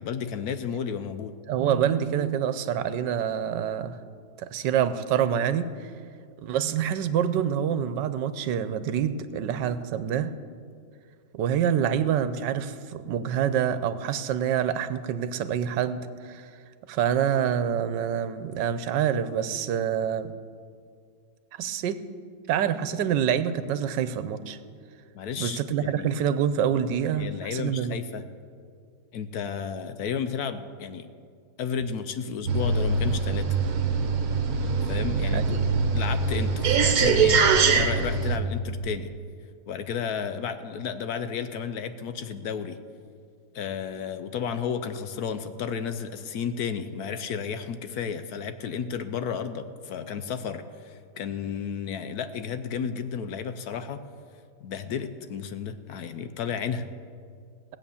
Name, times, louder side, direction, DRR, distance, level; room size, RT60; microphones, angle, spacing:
voice 1, 0.0-1.3 25.1-26.2 27.1-28.3 29.1-31.1 31.6-33.6 34.8-35.6 35.9-39.1 39.7-42.8 43.5-54.0 54.6-56.9, left 7 dB, 65° left, 10 dB, 1.1 m, -32 dB
voice 2, 1.5-4.0 4.4-5.9 6.4-10.3 11.3-16.5 16.9-20.3 21.5-22.0 22.5-24.6 25.4-28.0 35.3-35.7, right 9 dB, 85° right, 12 dB, 1.4 m, -26 dB
sound 1, 32.5-38.4, right 4 dB, 60° right, 1.4 m, -23 dB
18.0 x 8.1 x 7.1 m, 2.2 s
omnidirectional pair, 1.9 m